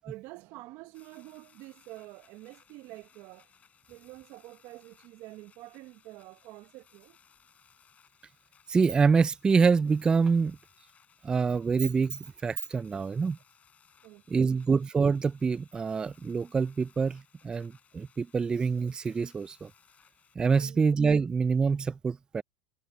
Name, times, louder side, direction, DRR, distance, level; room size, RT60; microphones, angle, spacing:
voice 1, 0.0-3.5 3.9-7.2 14.0-14.5 20.6-20.9, right 19 dB, 55° right, 0.9 m, -47 dB
sound 1, 0.9-20.3, left 7 dB, 30° left, 3.8 m, -63 dB
voice 2, 8.7-10.6 11.2-13.4 14.3-19.7 20.4-22.4, right 5 dB, 15° right, 0.3 m, -26 dB
hypercardioid pair, 110°, 5 cm